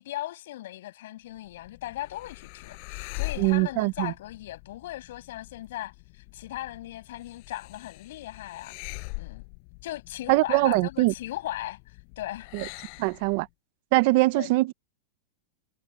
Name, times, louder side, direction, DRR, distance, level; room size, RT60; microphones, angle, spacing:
voice 1, 0.0-8.8 9.2-9.4 9.8-11.8 12.2-12.5 14.3-14.5, left 14 dB, 65° left, 7.2 m, -38 dB
sound 1, 1.4-13.5, left 39 dB, 45° left, 5.3 m, -42 dB
voice 2, 3.4-4.1 10.3-11.1 12.5-12.6 13.0-13.5 13.9-14.7, right 22 dB, 45° right, 0.7 m, -22 dB
supercardioid pair, 160°, 0 cm